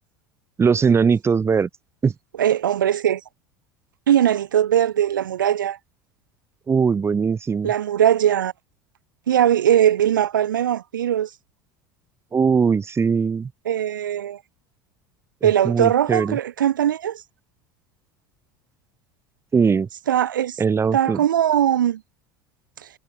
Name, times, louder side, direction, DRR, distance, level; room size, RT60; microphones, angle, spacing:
voice 1, 0.6-1.7 2.0-2.1 6.7-7.7 12.3-13.5 15.4-16.4 19.5-19.9 20.6-21.2, right 5 dB, 25° right, 1.9 m, -20 dB
voice 2, 2.4-3.2 4.1-5.8 7.6-8.5 9.3-11.3 13.7-14.4 15.4-17.2 20.1-20.6 20.9-22.0, right 10 dB, 90° right, 4.0 m, -20 dB
hypercardioid pair, 85°, 10 cm